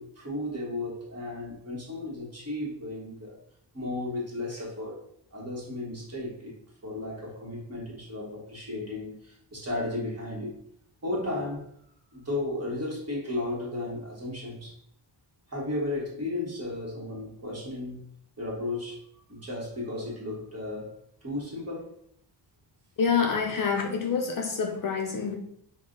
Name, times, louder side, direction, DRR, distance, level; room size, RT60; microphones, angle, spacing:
voice 1, 0.0-3.4 3.7-5.0 5.3-10.6 11.0-11.7 12.1-14.8 15.5-18.0 18.4-21.9, left 2 dB, 35° right, 1.2 m, -34 dB
voice 2, 23.0-25.4, left 5 dB, 50° left, 0.4 m, -27 dB
5.1 x 2.1 x 3.7 m
wide cardioid pair, 175°, 45 cm